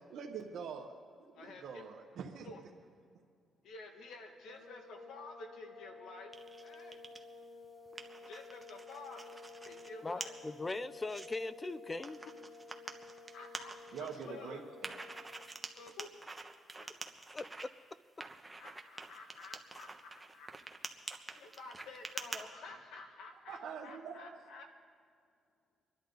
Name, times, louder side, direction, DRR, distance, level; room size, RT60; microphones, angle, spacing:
voice 1, 0.1-2.5 13.9-14.9 23.5-24.4, right 6 dB, 70° right, 1.4 m, -45 dB
voice 2, 1.3-1.8 2.4-2.6 3.6-6.3 6.6-7.0 8.2-10.4 12.6-12.8 13.2-14.6 15.5-16.3 16.6-16.9 18.6-20.5 21.3-24.7, left 3 dB, 80° left, 2.0 m, -51 dB
sound 1, 4.5-15.5, left 3 dB, 45° left, 5.1 m, -53 dB
sound 2, 6.3-7.2 7.6-9.9 10.2-10.3 10.8-11.3 12.0-14.2 14.8-17.6 18.2-22.4, right 2 dB, 15° right, 1.2 m, -46 dB
voice 3, 10.0-12.2 17.3-17.7, left 2 dB, 25° left, 0.6 m, -40 dB
26.5 x 11.0 x 4.0 m
cardioid pair, 90°, 0 cm